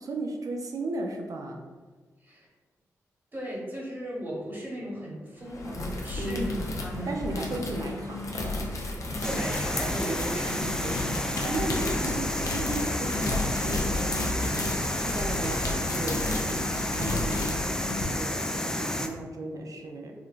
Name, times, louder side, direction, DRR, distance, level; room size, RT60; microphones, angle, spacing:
voice 1, 0.0-1.6 6.1-6.5 7.1-8.6 11.4-17.6 17.9-20.1, right 2 dB, 60° right, 2 dB, 0.5 m, -35 dB
voice 2, 3.3-6.5 6.8-7.2 9.2-11.4, right 1 dB, 30° right, -4 dB, 1.2 m, -36 dB
sound 1, 5.4-18.0, left 2 dB, 55° left, 0.6 m, -33 dB
sound 2, 9.2-19.1, left 1 dB, 10° left, 0.3 m, -31 dB
3.7 x 2.2 x 2.5 m, 1.4 s
supercardioid pair, 45°, 7 cm